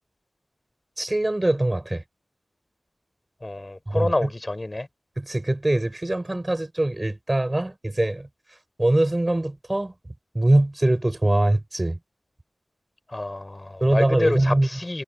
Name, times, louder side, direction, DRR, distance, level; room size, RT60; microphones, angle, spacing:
voice 1, 1.0-2.0 3.9-4.1 5.2-9.9 10.3-12.0 13.8-14.7, right 1 dB, 25° right, 4.5 m, -23 dB
voice 2, 3.4-4.9 13.1-15.0, left 2 dB, 25° left, 7.0 m, -27 dB
wide cardioid pair, 65°, 0 cm